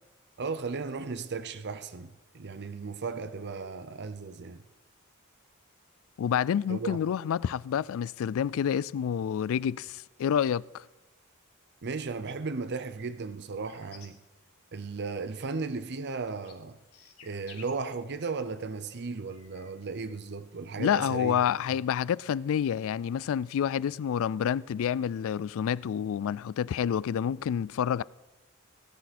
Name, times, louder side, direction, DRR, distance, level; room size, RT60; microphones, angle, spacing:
voice 1, 0.4-4.6 6.7-7.0 11.8-14.2 14.7-16.8 17.2-21.3, right 4 dB, 50° right, 0.7 m, -35 dB
voice 2, 6.2-10.8 20.8-28.0, left 8 dB, 65° left, 0.3 m, -28 dB
sound 1, 13.6-15.1 15.4-20.1, left 7 dB, 80° left, 2.0 m, -56 dB
18.5 x 10.5 x 4.3 m
head